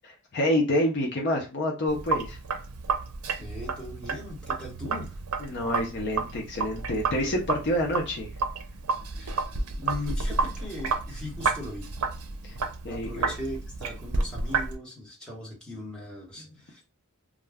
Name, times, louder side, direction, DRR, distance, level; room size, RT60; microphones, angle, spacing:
voice 1, 0.0-2.4 5.4-8.3 12.4-12.5 12.8-13.3 16.4-16.5, left 1 dB, 50° left, 0 dB, 0.5 m, -28 dB
Sink (filling or washing), 1.9-14.7, right 4 dB, 85° right, 0.5 m, -31 dB
voice 2, 3.4-5.2 9.2-11.9 12.9-16.8, left 1 dB, 5° left, -6 dB, 1.0 m, -39 dB
2.4 x 2.2 x 3.4 m, 0.30 s
head